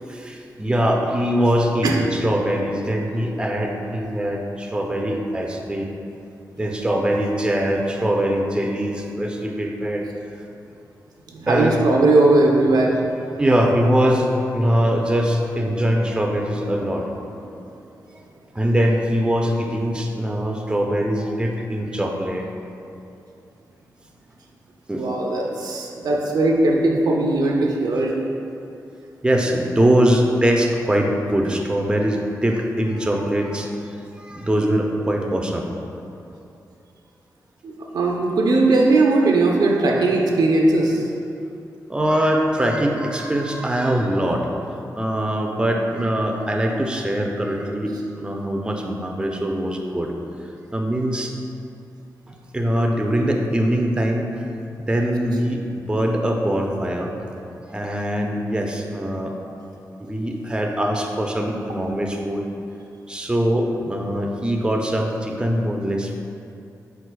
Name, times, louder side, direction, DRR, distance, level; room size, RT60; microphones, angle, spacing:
voice 1, 0.1-5.9 6.6-10.0 11.5-11.8 13.4-17.1 18.5-22.5 24.9-25.1 26.1-26.2 29.2-33.8 34.2-35.7 41.9-44.5 44.9-50.1 50.7-51.3 52.3-54.3 54.8-57.1 57.7-59.3 60.0-62.4 63.1-66.2, equal, 15° right, 1 dB, 0.4 m, -22 dB
voice 2, 11.3-13.0 24.9-28.2 37.6-41.0, right 2 dB, 75° right, -1 dB, 0.5 m, -18 dB
4.5 x 4.0 x 2.2 m, 2.7 s
cardioid pair, 50°, 7 cm